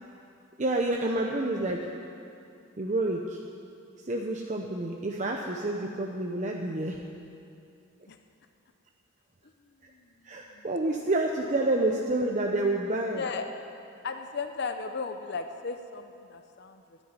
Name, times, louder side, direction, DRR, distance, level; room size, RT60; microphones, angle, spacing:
voice 1, 0.6-1.8 2.8-3.4 4.1-7.0 10.2-13.2, right 2 dB, 35° right, 1 dB, 0.7 m, -28 dB
voice 2, 10.4-11.0 13.1-13.5 14.0-17.0, left 4 dB, 50° left, 7 dB, 0.7 m, -36 dB
11.0 x 9.7 x 9.6 m, 2.6 s
head